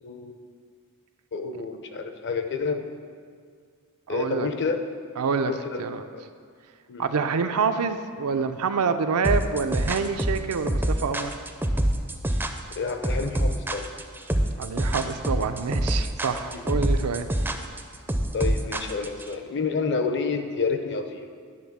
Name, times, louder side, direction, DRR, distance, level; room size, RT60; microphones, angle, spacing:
voice 1, 0.0-0.4 1.3-2.8 4.1-4.8 5.5-5.8 6.1-6.2 6.9-7.1 12.8-13.9 16.4-16.7 18.3-21.3, left 4 dB, 55° left, 6 dB, 0.7 m, -29 dB
voice 2, 4.1-4.5 5.2-5.5 5.8-6.0 7.0-11.3 14.6-17.3, right 5 dB, 85° right, 8 dB, 0.5 m, -27 dB
sound 1, 9.2-19.3, right 1 dB, 10° right, 0.4 m, -25 dB
10.5 x 3.5 x 7.3 m, 2.1 s
head